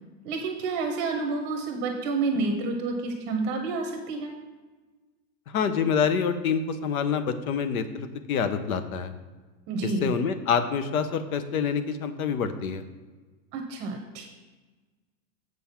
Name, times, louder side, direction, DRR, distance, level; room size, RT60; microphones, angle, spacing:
voice 1, 0.2-4.3 9.7-10.1 13.5-14.3, right 3 dB, 25° right, 4 dB, 0.8 m, -29 dB
voice 2, 5.5-9.1 9.8-12.8, left 6 dB, 70° left, 10 dB, 1.0 m, -27 dB
7.7 x 5.4 x 5.8 m, 1.3 s
supercardioid pair, 160°, 44 cm